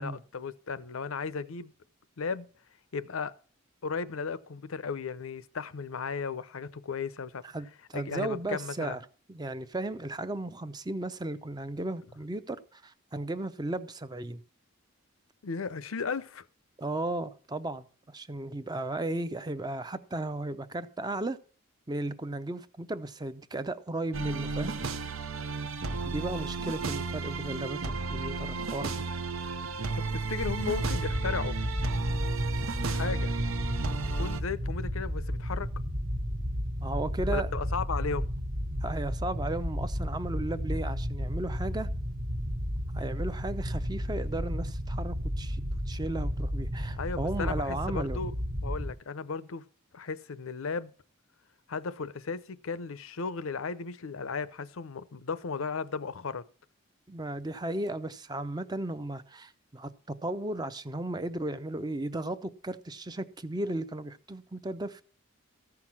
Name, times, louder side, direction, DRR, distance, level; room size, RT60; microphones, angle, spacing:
voice 1, 0.0-1.7 2.2-2.5 2.9-3.3 3.8-7.4 7.9-9.0 15.4-16.5 30.0-31.6 32.8-33.3 34.2-35.7 37.3-38.3 47.0-48.3 48.6-49.6 49.9-50.9 51.7-56.4, left 5 dB, 75° left, 0.6 m, -35 dB
voice 2, 7.4-9.0 9.3-14.4 16.8-21.4 21.9-24.8 26.0-29.0 36.8-37.5 38.8-41.9 42.9-45.6 45.9-48.2 57.1-65.0, right 2 dB, 20° right, 0.5 m, -35 dB
sound 1, 24.1-34.4, right 4 dB, 75° right, 0.8 m, -33 dB
sound 2, 30.4-48.9, equal, 40° right, 1.0 m, -33 dB
14.5 x 5.9 x 6.0 m
head